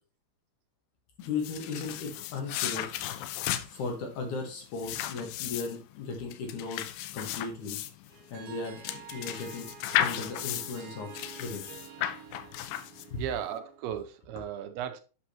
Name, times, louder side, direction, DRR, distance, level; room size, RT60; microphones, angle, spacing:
sound 1, 1.2-13.4, left 12 dB, 85° left, 2.6 m, -35 dB
voice 1, 1.2-2.9 3.7-6.8 7.1-7.8 8.3-9.7 10.0-11.1 11.4-11.6 13.1-13.2, left 4 dB, 60° left, 2 dB, 2.6 m, -36 dB
Harp, 8.1-13.9, right 8 dB, 70° right, 2.8 m, -49 dB
voice 2, 13.1-15.0, right 9 dB, 90° right, 8 dB, 2.6 m, -36 dB
8.5 x 6.1 x 2.9 m, 0.34 s
omnidirectional pair, 4.5 m